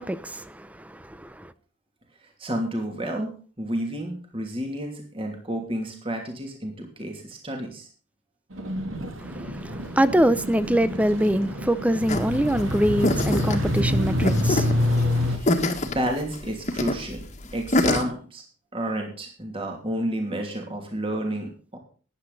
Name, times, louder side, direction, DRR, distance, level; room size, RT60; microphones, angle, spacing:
voice 1, 0.0-1.5 9.2-15.3, right 1 dB, 5° right, 0.6 m, -24 dB
voice 2, 2.2-3.3 3.6-7.9 15.3-17.2 17.5-18.4 18.7-21.8, right 1 dB, 25° right, 2.8 m, -30 dB
sound 1, 8.5-15.4, left 1 dB, 75° right, 2.9 m, -27 dB
sound 2, 12.1-18.0, left 1 dB, 35° left, 1.7 m, -26 dB
14.0 x 10.5 x 4.1 m
head